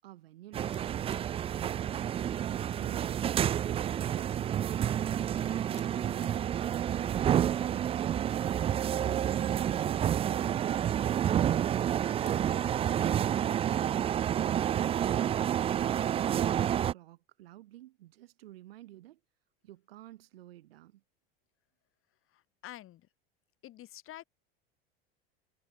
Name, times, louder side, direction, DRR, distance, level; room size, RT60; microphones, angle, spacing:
voice 1, 0.0-3.1 16.3-19.2 19.6-21.0, right 15 dB, 80° right, 5.2 m, -52 dB
sound 1, 0.5-16.9, right 10 dB, 20° right, 0.3 m, -29 dB
sound 2, 0.7-13.3, left 40 dB or more, 65° left, 7.7 m, -63 dB
voice 2, 22.3-23.1 23.6-24.2, left 14 dB, 45° left, 4.5 m, -48 dB
hypercardioid pair, 95°, 30 cm